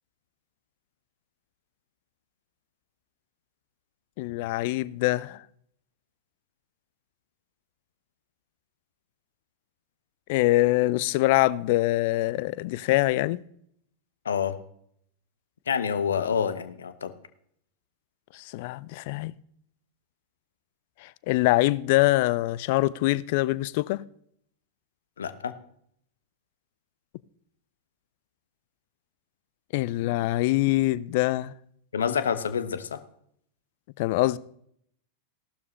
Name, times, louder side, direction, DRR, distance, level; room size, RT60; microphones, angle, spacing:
voice 1, 4.2-5.4 10.3-13.4 18.3-19.3 21.0-24.0 29.7-31.5 34.0-34.4, left 18 dB, 50° left, 0.5 m, -24 dB
voice 2, 14.2-14.6 15.7-17.1 25.2-25.5 31.9-33.0, left 7 dB, 65° left, 1.1 m, -27 dB
15.5 x 12.0 x 3.2 m
figure-of-eight pair, 90°, 0 cm